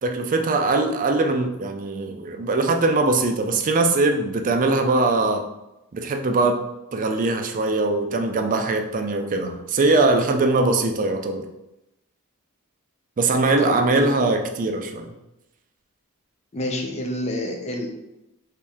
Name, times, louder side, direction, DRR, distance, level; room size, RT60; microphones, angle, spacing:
voice 1, 0.0-5.4 5.9-6.6 6.9-11.4 13.2-15.1, right 3 dB, 40° right, 4 dB, 0.4 m, -21 dB
voice 2, 13.6-14.2 16.5-17.9, left 1 dB, 30° left, 2 dB, 0.5 m, -29 dB
3.1 x 2.8 x 3.5 m, 0.92 s
head